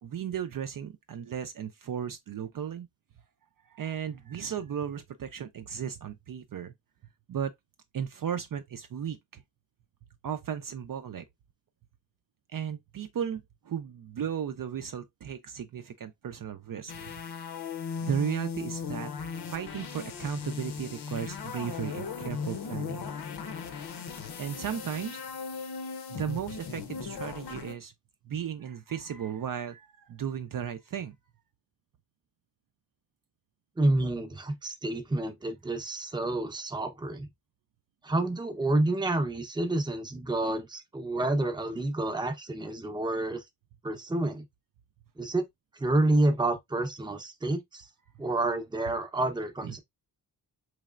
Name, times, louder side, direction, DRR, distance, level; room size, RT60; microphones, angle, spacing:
voice 1, 0.0-2.9 3.7-6.7 7.3-7.5 7.9-9.4 10.2-11.3 12.5-17.0 18.0-19.1 19.4-23.1 24.4-25.2 26.1-27.9 28.2-31.2 49.6-49.8, right 8 dB, 55° right, 0.5 m, -35 dB
sound 1, 16.9-27.7, left 5 dB, 65° left, 0.7 m, -38 dB
voice 2, 33.8-37.3 38.0-43.4 43.8-44.4 45.2-45.4 45.8-47.9 48.2-49.8, right 2 dB, 10° right, 0.6 m, -29 dB
4.7 x 3.2 x 2.4 m
wide cardioid pair, 160°, 41 cm